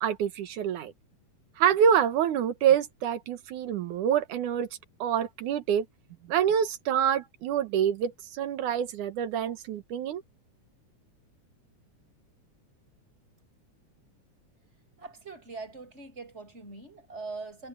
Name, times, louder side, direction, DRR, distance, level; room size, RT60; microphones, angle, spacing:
voice 1, 0.0-0.9 1.6-4.7 5.0-5.9 6.3-10.2, right 8 dB, 75° right, 2.8 m, -26 dB
voice 2, 15.0-17.7, right 3 dB, 20° right, 7.6 m, -42 dB
omnidirectional pair, 3.6 m